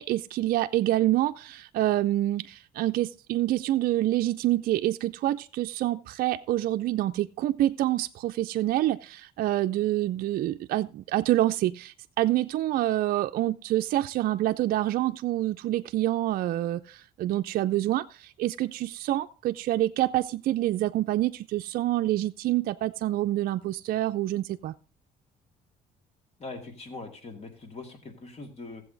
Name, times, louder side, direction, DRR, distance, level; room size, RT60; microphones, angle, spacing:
voice 1, 0.0-24.7, right 14 dB, 60° right, 0.4 m, -27 dB
voice 2, 26.4-28.8, left 3 dB, 40° left, 2.3 m, -42 dB
14.5 x 7.7 x 3.9 m
cardioid pair, 110°, 17 cm